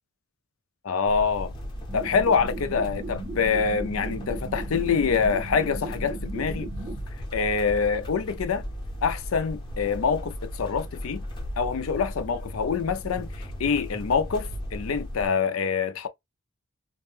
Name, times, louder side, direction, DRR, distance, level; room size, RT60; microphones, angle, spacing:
voice 1, 0.8-1.5 1.9-6.7 7.3-8.6 9.0-11.2 11.6-16.1, left 5 dB, 80° left, 0.5 m, -25 dB
sound 1, 1.1-15.3, equal, 20° left, 0.7 m, -36 dB
sound 2, 1.9-7.0, right 3 dB, 30° right, 0.6 m, -38 dB
2.5 x 2.1 x 3.1 m
head